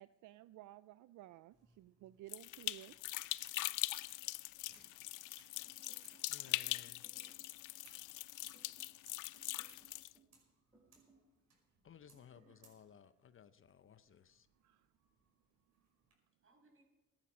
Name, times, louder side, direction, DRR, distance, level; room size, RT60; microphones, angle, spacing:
voice 1, 0.0-3.0 12.4-12.7 14.6-14.9, right 15 dB, 75° right, 14 dB, 0.5 m, -56 dB
sound 1, 1.5-16.2, right 4 dB, 60° right, 5.5 m, -71 dB
sound 2, 2.3-10.1, left 18 dB, 85° left, 0.5 m, -42 dB
voice 2, 5.2-7.0 16.4-16.8, right 2 dB, 45° right, 1 dB, 6.1 m, -73 dB
sound 3, 5.7-6.6 7.0-7.6 8.4-9.0 9.3-10.4 10.7-11.3 12.1-12.6, right 3 dB, 15° right, 4.8 m, -68 dB
voice 3, 6.3-7.0 11.8-14.5, left 8 dB, 45° left, 13 dB, 0.7 m, -60 dB
16.0 x 11.5 x 6.2 m, 1.1 s
cardioid pair, 90°, 30 cm